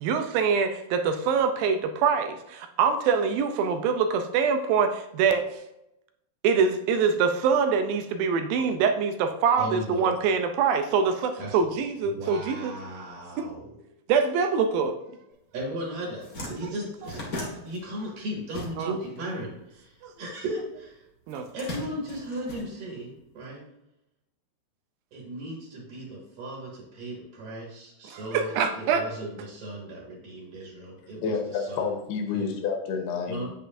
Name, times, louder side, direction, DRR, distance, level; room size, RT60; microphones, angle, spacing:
voice 1, 0.0-5.5 6.4-12.7 14.1-14.9 18.8-18.9 20.0-20.1 21.3-21.5 28.1-29.0, right 6 dB, 80° right, 7 dB, 2.1 m, -24 dB
voice 2, 9.6-10.2 11.4-11.6 12.0-13.8 15.5-17.4 17.6-21.0 21.5-23.6 25.1-32.0 32.3-32.5 33.3-33.5, right 1 dB, 60° right, -3 dB, 3.4 m, -36 dB
sound 1, 15.6-15.7 16.0-19.2 19.4-20.6 21.3-23.3, left 1 dB, 40° left, 1.3 m, -38 dB
voice 3, 31.2-33.5, left 5 dB, 80° left, 3 dB, 3.0 m, -29 dB
8.3 x 7.7 x 2.6 m, 0.86 s
omnidirectional pair, 4.7 m